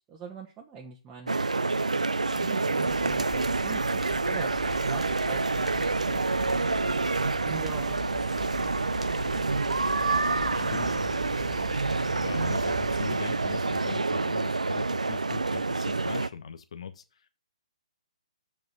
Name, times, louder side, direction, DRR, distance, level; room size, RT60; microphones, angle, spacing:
voice 1, 0.1-6.7 7.4-8.9, right 6 dB, 20° right, 1.2 m, -43 dB
sound 1, 1.3-16.3, right 3 dB, 85° right, 0.4 m, -28 dB
sound 2, 2.4-14.0, right 6 dB, 60° right, 0.8 m, -42 dB
sound 3, 2.8-13.1, left 3 dB, 5° right, 0.8 m, -45 dB
voice 2, 10.5-11.7 12.1-17.0, left 7 dB, 60° left, 1.3 m, -40 dB
7.6 x 5.3 x 6.8 m
figure-of-eight pair, 135°, 4 cm